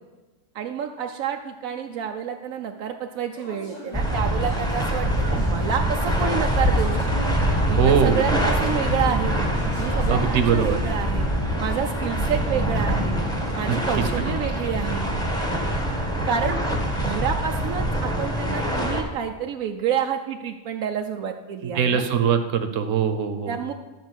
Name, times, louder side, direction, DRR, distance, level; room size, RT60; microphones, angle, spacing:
voice 1, 0.5-5.1 5.3-7.0 7.7-9.3 9.8-11.3 11.6-13.2 13.6-15.0 16.3-16.6 17.0-22.0 23.5-23.7, right 8 dB, 85° right, 4 dB, 1.1 m, -28 dB
sound 1, 3.3-12.5 12.8-13.6, left 1 dB, 60° left, 5.2 m, -41 dB
sound 2, 3.9-19.0, right 1 dB, 5° left, 1.5 m, -24 dB
voice 2, 7.8-8.3 10.1-10.8 13.7-14.0 21.6-23.6, right 7 dB, 70° right, 8 dB, 1.3 m, -22 dB
12.5 x 5.0 x 8.0 m, 1.2 s
omnidirectional pair, 1.4 m